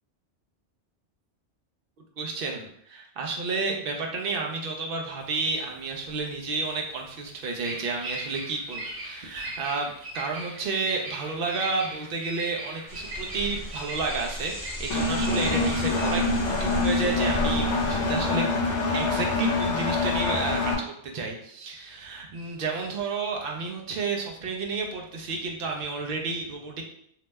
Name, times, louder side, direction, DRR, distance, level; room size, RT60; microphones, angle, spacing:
voice 1, 2.2-9.9 10.1-16.2 16.5-18.5 18.9-20.7 21.0-26.8, right 3 dB, 60° right, 1 dB, 0.7 m, -31 dB
Bird vocalization bird call bird song, 5.2-18.5, right 1 dB, 85° right, 1.2 m, -40 dB
sound 1, 12.9-18.3, equal, 20° left, 0.7 m, -36 dB
Engine, 14.9-20.7, left 3 dB, 80° left, 0.9 m, -25 dB
2.8 x 2.0 x 3.3 m, 0.68 s
omnidirectional pair, 1.2 m